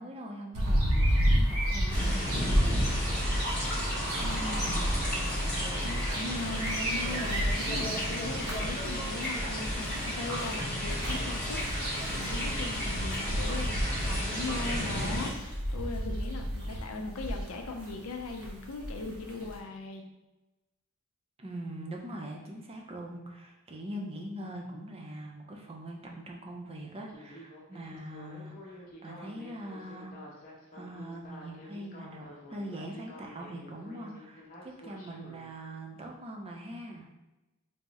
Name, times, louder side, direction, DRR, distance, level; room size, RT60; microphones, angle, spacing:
voice 1, 0.0-2.6 4.5-5.2 21.4-30.3 30.7-37.1, right 1 dB, 25° right, 1 dB, 0.4 m, -42 dB
sound 1, 0.5-19.6, equal, 70° right, 0.8 m, -31 dB
sound 2, 1.9-15.3, equal, 5° left, 0.9 m, -34 dB
voice 2, 4.2-4.8 5.8-20.1, left 3 dB, 70° left, 3 dB, 0.5 m, -39 dB
Speech synthesizer, 27.1-35.4, left 1 dB, 40° left, 0.7 m, -49 dB
3.5 x 2.0 x 4.0 m, 1.0 s
head